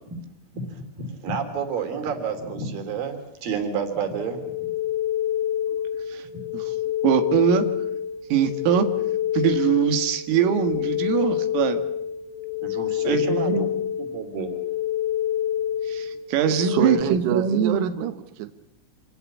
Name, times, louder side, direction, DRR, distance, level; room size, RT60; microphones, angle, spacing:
voice 1, 0.5-4.4 12.6-13.7 14.0-14.5, right 5 dB, 50° right, 6 dB, 4.6 m, -30 dB
sound 1, 4.2-17.0, left 11 dB, 25° left, 1.9 m, -27 dB
voice 2, 7.0-7.7 8.3-8.9 9.3-11.8 13.0-13.7 15.9-17.9, right 8 dB, 90° right, 7 dB, 4.5 m, -22 dB
voice 3, 16.5-18.5, right 12 dB, 70° right, 9 dB, 2.8 m, -27 dB
27.0 x 18.0 x 8.7 m, 0.80 s
omnidirectional pair, 5.8 m